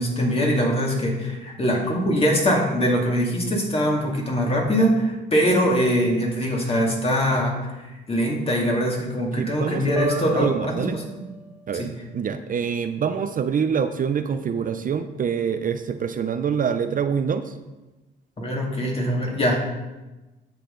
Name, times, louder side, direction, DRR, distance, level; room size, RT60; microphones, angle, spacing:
voice 1, 0.0-10.5 10.9-11.0 11.7-11.9 18.4-19.6, equal, 30° left, -1 dB, 2.3 m, -22 dB
voice 2, 9.3-11.0 11.7-17.6, right 7 dB, 45° right, 9 dB, 0.5 m, -26 dB
sound 1, 10.0-11.8, left 4 dB, 5° right, 1.5 m, -35 dB
9.4 x 6.7 x 3.8 m, 1.1 s
cardioid pair, 90°, 20 cm